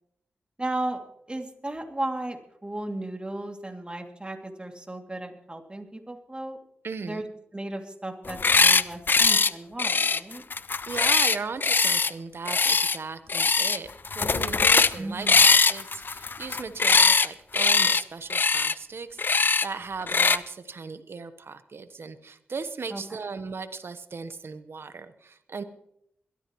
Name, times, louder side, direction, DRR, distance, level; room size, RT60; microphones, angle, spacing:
voice 1, 0.6-1.0 1.3-6.6 7.0-7.2 7.5-10.4 15.0-15.5 22.9-23.0, right 1 dB, 25° right, 3 dB, 2.6 m, -35 dB
voice 2, 6.8-7.2 10.9-25.6, right 4 dB, 60° right, 12 dB, 1.0 m, -37 dB
sound 1, 8.3-8.8 9.1-9.5 9.8-12.1 12.5-13.0 13.3-13.8 14.0-15.0 15.3-17.3 17.5-18.0 18.3-18.7 19.2-19.7 20.1-20.4, left 4 dB, 50° left, 0.5 m, -21 dB
21.5 x 13.5 x 3.1 m, 0.76 s
cardioid pair, 45°, 4 cm